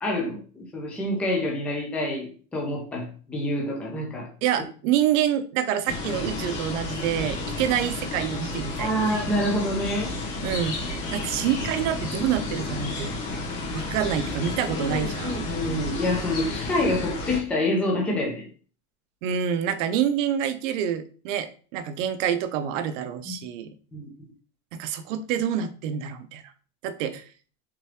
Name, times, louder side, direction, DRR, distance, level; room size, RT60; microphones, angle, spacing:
voice 1, 0.0-4.3 8.8-10.1 15.5-18.5 23.3-23.4 23.9-24.3, left 1 dB, 5° left, -2 dB, 0.3 m, -27 dB
voice 2, 4.4-9.2 10.4-13.1 13.7-15.5 19.2-23.7 24.7-26.5 26.8-27.2, right 9 dB, 60° right, 12 dB, 0.6 m, -27 dB
sound 1, 5.9-17.4, left 2 dB, 85° left, 1.5 m, -31 dB
3.7 x 3.0 x 3.2 m, 0.40 s
supercardioid pair, 155°, 43 cm